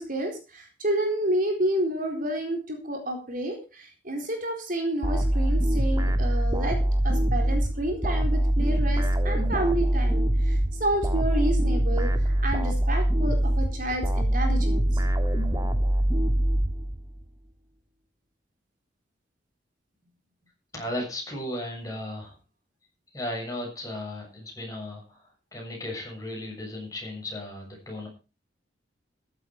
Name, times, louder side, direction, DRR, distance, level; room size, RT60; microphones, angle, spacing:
voice 1, 0.0-6.8 7.0-15.0, right 1 dB, 50° right, 4 dB, 4.2 m, -30 dB
sound 1, 5.0-17.2, right 1 dB, 20° right, 1.8 m, -24 dB
voice 2, 20.7-22.4 23.1-28.1, left 1 dB, 20° left, 0 dB, 7.2 m, -35 dB
14.5 x 11.5 x 4.8 m, 0.32 s
head